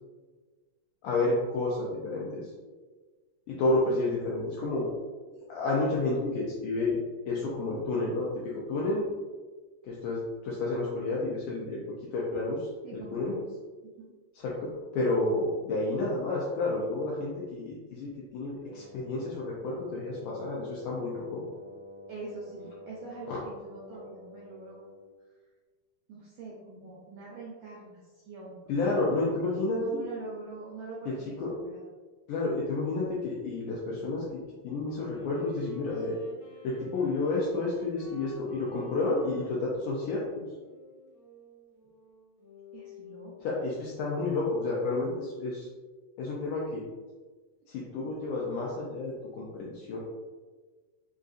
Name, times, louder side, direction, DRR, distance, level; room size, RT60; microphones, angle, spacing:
voice 1, 1.0-2.5 3.5-4.9 5.5-7.0 7.3-8.3 8.7-9.0 9.8-11.8 12.1-13.4 14.4-21.4 23.3-23.4 28.7-29.8 31.4-31.6 32.3-34.2 34.6-36.2 36.6-40.5 43.4-45.7 46.2-46.9 47.7-50.0, left 2 dB, 80° left, -5 dB, 1.9 m, -30 dB
voice 2, 12.8-13.5 14.0-14.1 22.1-24.8 26.1-28.5 29.7-31.8 42.7-43.6, right 3 dB, 85° right, -5 dB, 1.6 m, -44 dB
Wind instrument woodwind instrument, 18.6-25.2, left 1 dB, 65° right, 1.0 m, -48 dB
Wind instrument woodwind instrument 2, 34.7-43.4, left 1 dB, 60° left, 1.8 m, -49 dB
5.5 x 2.5 x 2.4 m, 1.4 s
omnidirectional pair, 4.2 m